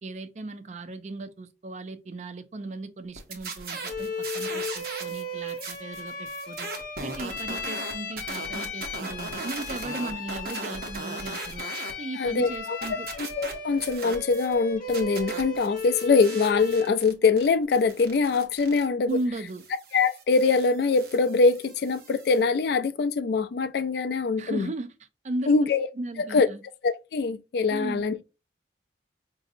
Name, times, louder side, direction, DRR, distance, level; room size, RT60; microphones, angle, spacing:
voice 1, 0.0-6.7 7.0-11.6 12.0-13.1 19.1-19.6 24.4-25.7 26.0-26.6 27.7-28.2, right 2 dB, 40° right, 0.4 m, -36 dB
sound 1, 3.2-5.2 5.5-11.9 12.3-14.5 14.9-22.4, right 3 dB, 55° right, 0.9 m, -38 dB
Bowed string instrument, 3.8-17.0, left 3 dB, 50° left, 0.9 m, -36 dB
voice 2, 12.2-12.8 13.2-19.1 19.9-24.7 25.5-25.9 26.2-26.5 26.8-28.2, left 4 dB, 65° left, 0.3 m, -23 dB
5.0 x 2.7 x 2.6 m
head